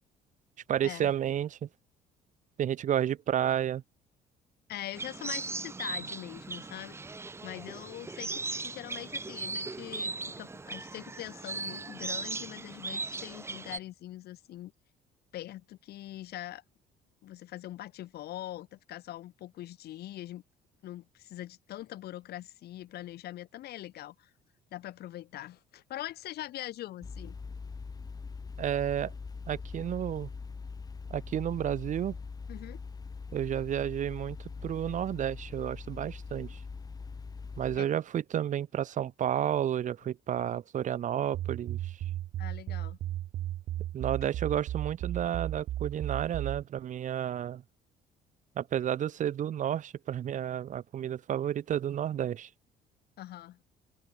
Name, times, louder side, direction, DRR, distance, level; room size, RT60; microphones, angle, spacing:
voice 1, 0.7-1.7 2.6-3.8 28.6-29.1 29.5-30.3 31.1-32.2 33.3-34.4 34.6-36.6 37.6-42.0 43.9-47.6 48.6-52.5, right 10 dB, 45° right, 0.8 m, -31 dB
voice 2, 4.7-7.0 7.4-14.7 15.3-16.6 17.2-20.4 20.8-24.3 24.7-27.4 32.5-32.8 37.7-37.9 42.4-43.0 53.2-53.6, left 14 dB, 70° left, 3.5 m, -43 dB
sound 1, 4.9-13.8, right 3 dB, 15° right, 0.7 m, -38 dB
sound 2, 27.0-37.8, left 4 dB, 20° left, 1.0 m, -42 dB
sound 3, 41.3-46.6, right 13 dB, 65° right, 1.2 m, -35 dB
open air
cardioid pair, 110°, 17 cm